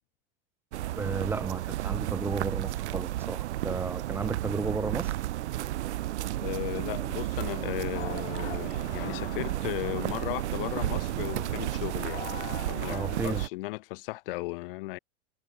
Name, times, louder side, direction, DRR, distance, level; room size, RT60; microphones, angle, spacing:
sound 1, 0.7-13.5, right 15 dB, 80° right, 1.1 m, -32 dB
voice 1, 1.0-5.1 12.9-13.4, right 3 dB, 5° right, 1.2 m, -33 dB
voice 2, 6.3-12.2 12.7-15.0, left 22 dB, 55° left, 2.1 m, -36 dB
sound 2, 7.9-13.4, left 13 dB, 85° left, 1.3 m, -44 dB
Gurgling, 8.2-12.9, right 24 dB, 40° right, 2.4 m, -47 dB
supercardioid pair, 150°, 34 cm